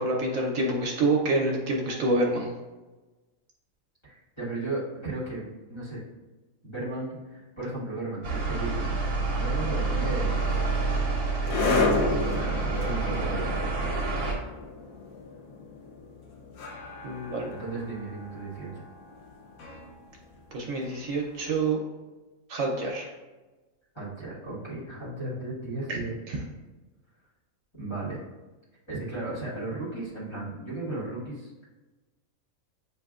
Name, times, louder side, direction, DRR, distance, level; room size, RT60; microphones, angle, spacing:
voice 1, 0.0-2.5 17.0-17.5 20.5-21.8 22.5-23.1 25.9-26.4, right 2 dB, 70° right, 0 dB, 1.0 m, -27 dB
voice 2, 4.0-6.0 6.6-8.8 9.3-10.8 11.7-13.8 17.5-18.8 23.9-26.2 27.7-28.2 28.9-31.5, right 2 dB, 20° left, -9 dB, 1.5 m, -35 dB
sound 1, 8.2-14.4, right 3 dB, 50° right, 1.0 m, -28 dB
sound 2, 10.3-21.4, left 3 dB, 75° left, 1.1 m, -33 dB
7.4 x 2.6 x 2.4 m, 1.2 s
omnidirectional pair, 1.5 m